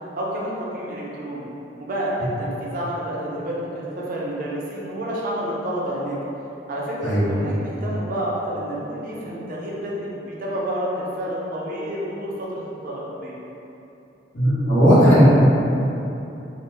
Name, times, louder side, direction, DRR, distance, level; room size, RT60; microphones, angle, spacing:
voice 1, 0.1-1.4 1.8-6.2 6.7-13.4, right 1 dB, 50° right, -5 dB, 0.5 m, -29 dB
voice 2, 14.3-15.2, equal, 90° left, -11 dB, 1.1 m, -15 dB
2.7 x 2.1 x 3.3 m, 2.9 s
head